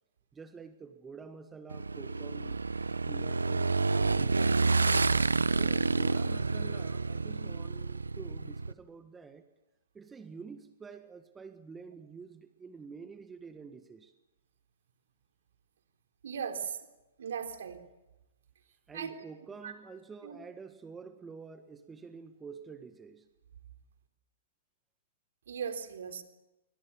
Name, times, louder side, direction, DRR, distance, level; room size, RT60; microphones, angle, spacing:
voice 1, 0.3-2.6 5.6-9.4 9.9-14.1 18.9-23.3, right 5 dB, 15° right, 1.6 m, -48 dB
Motorcycle / Engine, 1.7-8.7, right 3 dB, 85° right, 1.0 m, -29 dB
voice 2, 16.2-16.8 17.2-17.8 18.9-19.1 19.6-19.7 20.2-20.4 25.5-26.2, right 7 dB, 65° right, 3.6 m, -38 dB
28.0 x 24.0 x 7.2 m
figure-of-eight pair, 115°, 0 cm